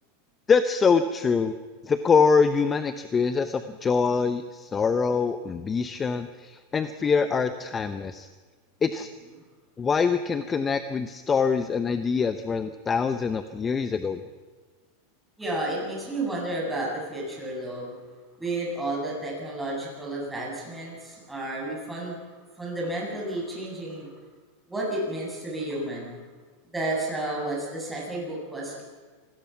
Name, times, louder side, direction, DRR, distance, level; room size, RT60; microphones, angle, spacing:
voice 1, 0.5-1.5 1.8-8.3 8.8-9.1 9.8-14.2, left 5 dB, 15° left, 10 dB, 0.8 m, -24 dB
voice 2, 15.4-17.9 18.4-22.2 22.6-24.1 24.7-26.2 26.7-28.8, right 1 dB, 5° right, -3 dB, 7.9 m, -31 dB
27.5 x 20.0 x 5.9 m, 1.4 s
supercardioid pair, 150°, 0 cm